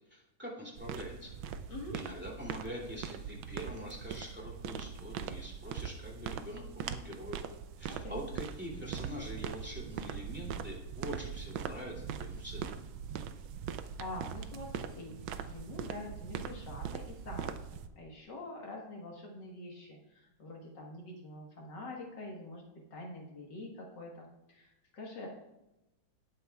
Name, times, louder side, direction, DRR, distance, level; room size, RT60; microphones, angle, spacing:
voice 1, 0.1-1.3 1.9-7.4 7.8-12.7, equal, 5° right, -3 dB, 2.6 m, -44 dB
sound 1, 0.8-17.9, right 8 dB, 85° right, 1.4 m, -41 dB
voice 2, 7.9-8.2 14.0-15.2 15.5-22.6 22.9-25.3, left 2 dB, 65° left, -1 dB, 2.1 m, -45 dB
18.5 x 9.1 x 2.3 m, 0.94 s
omnidirectional pair, 2.1 m